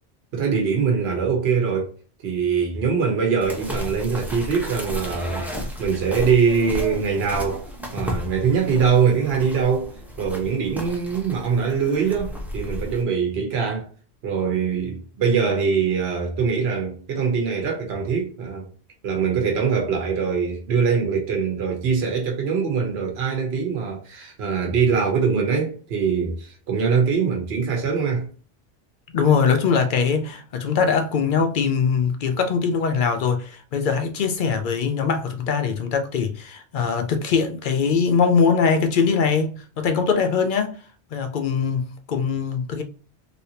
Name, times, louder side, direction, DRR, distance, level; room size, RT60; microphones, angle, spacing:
voice 1, 0.3-1.9 2.2-13.9 14.2-18.7 19.0-28.3, right 6 dB, 65° right, 1.0 m, -23 dB
sound 1, 3.4-13.0, equal, ahead, 0.5 m, -33 dB
voice 2, 29.1-40.7 41.1-41.8 42.1-42.8, left 5 dB, 60° left, 0.6 m, -22 dB
3.3 x 2.7 x 2.8 m
omnidirectional pair, 1.1 m